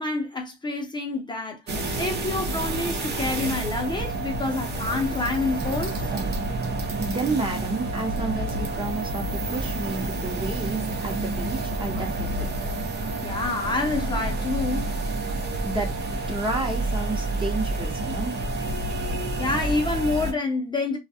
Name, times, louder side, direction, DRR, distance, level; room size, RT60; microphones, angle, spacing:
voice 1, 0.0-6.1 12.0-12.1 13.2-14.9 19.4-21.0, left 3 dB, 20° left, 0.7 m, -28 dB
sound 1, 1.7-20.3, right 2 dB, 55° right, 0.8 m, -29 dB
voice 2, 7.0-12.5 15.6-15.9 16.3-18.4, right 2 dB, 25° right, 0.9 m, -31 dB
2.3 x 2.2 x 2.7 m
cardioid pair, 90°, 20 cm